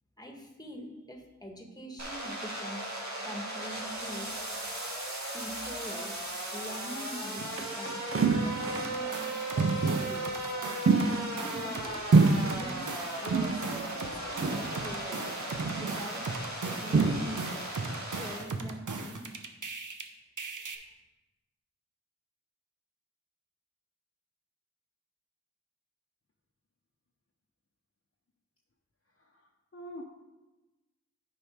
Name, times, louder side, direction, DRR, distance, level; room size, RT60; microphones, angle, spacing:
voice 1, 0.2-2.9 3.2-4.3 5.3-6.2 6.5-8.1 8.4-9.3 9.5-10.5 11.3-13.6 13.9-15.3 15.7-16.2 16.6-17.8 18.1-19.2, equal, 10° left, 2 dB, 1.4 m, -44 dB
sound 1, 2.0-18.4, right 1 dB, 65° right, 1.8 m, -37 dB
sound 2, 7.4-9.1 9.6-10.2 10.9-11.9 12.1-12.9 13.3-13.9 14.4-14.9 15.6-16.0 16.9-17.6 17.8-18.0, right 4 dB, 50° right, 0.5 m, -27 dB
sound 3, 8.7-11.1 11.4-20.0 20.4-20.7, right 4 dB, 90° right, 0.7 m, -39 dB
voice 2, 29.2-30.0, equal, 45° left, -1 dB, 0.9 m, -46 dB
8.8 x 4.7 x 4.9 m, 1.1 s
wide cardioid pair, 45°, 30 cm